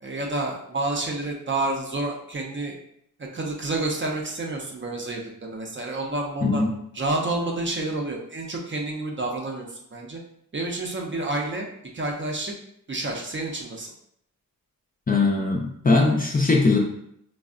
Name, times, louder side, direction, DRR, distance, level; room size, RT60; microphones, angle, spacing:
voice 1, 0.0-2.7 3.2-6.6 6.9-10.2 10.5-11.7 11.9-12.5 12.9-13.9, right 2 dB, 35° right, 0 dB, 0.5 m, -29 dB
voice 2, 15.1-16.8, left 3 dB, 25° left, 0 dB, 0.4 m, -20 dB
3.3 x 2.0 x 2.4 m, 0.72 s
wide cardioid pair, 80°, 35 cm